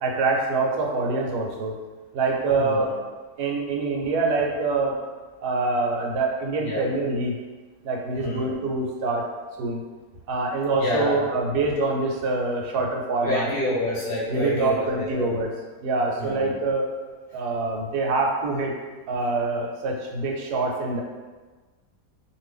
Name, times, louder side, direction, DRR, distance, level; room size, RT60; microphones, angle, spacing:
voice 1, 0.0-1.7 2.1-2.9 3.4-5.0 5.4-7.4 7.8-9.2 9.6-9.8 10.3-13.5 14.3-15.5 15.8-16.9 17.3-18.7 19.1-21.0, right 3 dB, 75° right, 0 dB, 1.1 m, -25 dB
voice 2, 2.5-2.9 6.6-6.8 8.2-8.5 10.8-11.2 13.2-14.9 15.2-15.3 16.2-16.5, left 1 dB, 50° left, -7 dB, 0.7 m, -28 dB
2.6 x 2.5 x 3.3 m, 1.3 s
omnidirectional pair, 1.8 m